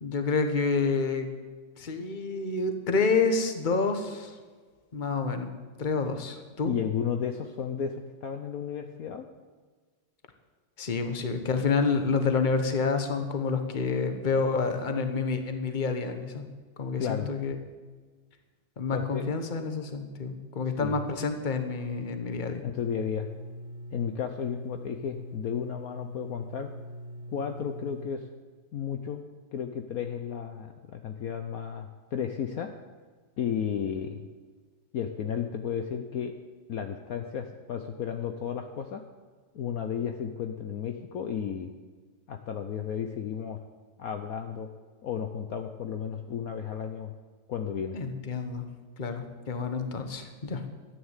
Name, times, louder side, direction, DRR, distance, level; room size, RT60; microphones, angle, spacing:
voice 1, 0.0-1.3 1.8-4.4 4.9-5.5 5.8-6.7 10.8-16.5 16.8-17.5 18.8-22.6 47.9-48.6 49.0-50.6, left 4 dB, 30° left, 7 dB, 1.2 m, -28 dB
voice 2, 6.7-9.3 17.0-17.3 18.9-19.2 20.8-21.0 22.6-23.3 23.9-26.7 27.3-28.2 28.7-29.2 29.5-32.7 33.4-34.3 34.9-36.3 36.7-39.0 39.5-41.7 42.3-43.6 44.0-44.7 45.0-47.1 47.5-48.0, left 8 dB, 60° left, 6 dB, 1.1 m, -33 dB
sound 1, 22.8-28.1, equal, 70° right, 1.8 m, -42 dB
13.0 x 9.7 x 8.1 m, 1.4 s
omnidirectional pair, 1.9 m